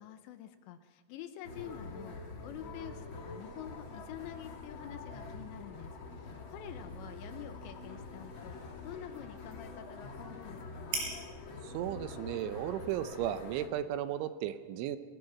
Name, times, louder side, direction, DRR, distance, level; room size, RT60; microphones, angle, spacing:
voice 1, 0.0-11.1, left 11 dB, 80° left, 9 dB, 2.9 m, -48 dB
sound 1, 1.4-13.7, left 3 dB, 50° left, 1.5 m, -46 dB
sound 2, 6.6-14.3, right 3 dB, 65° right, 6.8 m, -47 dB
voice 2, 11.6-15.0, right 11 dB, 80° right, 11 dB, 3.2 m, -35 dB
25.5 x 19.0 x 6.0 m, 1.4 s
omnidirectional pair, 5.6 m